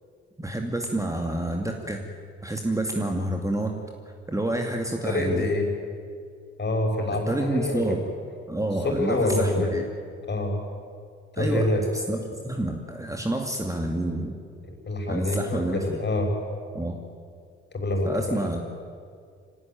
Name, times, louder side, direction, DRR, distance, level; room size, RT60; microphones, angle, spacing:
voice 1, 0.4-2.1 2.4-3.8 4.3-5.5 7.1-8.0 8.5-9.8 11.4-11.7 12.1-14.4 15.1-16.0 16.7-17.0 18.0-18.6, right 1 dB, 10° right, 3 dB, 2.4 m, -28 dB
voice 2, 5.0-5.7 6.6-8.0 8.8-9.8 10.3-10.6 11.3-11.8 14.7-16.3 17.7-18.5, left 2 dB, 30° left, 3 dB, 6.0 m, -26 dB
26.0 x 17.5 x 9.2 m, 2.2 s
figure-of-eight pair, 40°, 33 cm